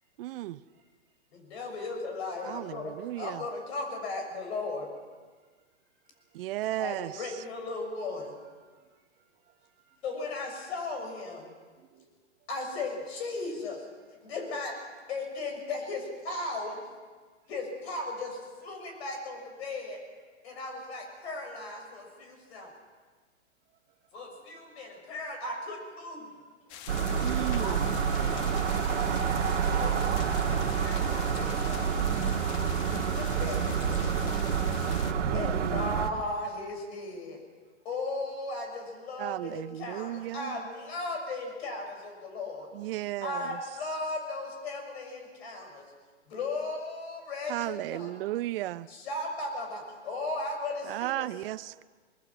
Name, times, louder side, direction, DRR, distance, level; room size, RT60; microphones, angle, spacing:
voice 1, 0.2-0.6 2.4-3.4 6.3-7.4 27.2-27.9 35.2-36.0 39.2-40.6 42.7-43.6 47.5-48.9 50.8-51.8, right 15 dB, 55° right, 15 dB, 0.6 m, -35 dB
voice 2, 1.3-4.9 6.8-8.3 10.0-11.5 12.5-13.9 14.2-16.8 17.5-20.0 20.4-22.7 24.1-26.3 27.6-28.7 29.8-31.9 32.7-34.6 35.3-37.4 37.9-42.7 43.2-45.8 46.3-48.1 48.9-51.3, left 2 dB, 65° left, 3 dB, 6.9 m, -37 dB
voice 3, 6.0-6.4 8.4-10.0 11.7-12.1 24.2-24.3 25.1-25.2 26.6-27.4 51.8-51.9, right 8 dB, 30° right, -2 dB, 2.5 m, -67 dB
sound 1, 26.7-35.1, left 10 dB, 35° left, 1.1 m, -44 dB
sound 2, 26.9-36.1, right 7 dB, 85° right, 1.8 m, -28 dB
25.5 x 20.5 x 6.1 m, 1.4 s
hypercardioid pair, 125°, 35 cm